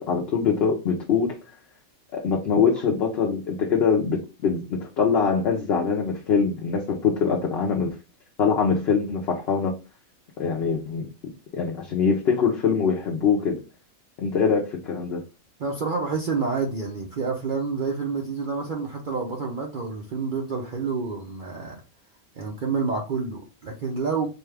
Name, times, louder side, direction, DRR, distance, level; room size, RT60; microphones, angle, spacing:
voice 1, 0.1-1.3 2.1-8.0 8.4-9.7 10.4-11.1 11.5-13.6 14.2-15.2, left 6 dB, 55° left, 0.8 m, -23 dB
voice 2, 15.6-21.8 22.3-24.3, right 4 dB, 55° right, 0.6 m, -28 dB
4.3 x 2.3 x 3.2 m
omnidirectional pair, 1.4 m